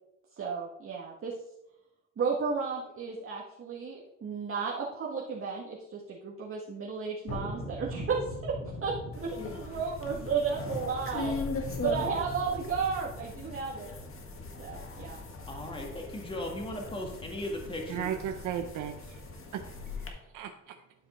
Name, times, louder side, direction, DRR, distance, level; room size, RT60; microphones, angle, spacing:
voice 1, 0.3-1.4 2.2-11.3 11.8-13.9 14.6-15.2, right 5 dB, 45° right, -3 dB, 1.6 m, -33 dB
Thunderstorm, 7.3-17.5 17.8-17.9, left 1 dB, 85° left, 3.6 m, -42 dB
sound 1, 9.1-20.1, left 3 dB, 45° left, 1.9 m, -40 dB
voice 2, 15.5-18.1, left 1 dB, 15° left, 1 dB, 1.8 m, -37 dB
voice 3, 17.9-19.2 19.5-19.6 20.0-20.8, right 10 dB, 80° right, 6 dB, 0.7 m, -36 dB
11.5 x 5.0 x 4.3 m, 0.89 s
cardioid pair, 90°, 30 cm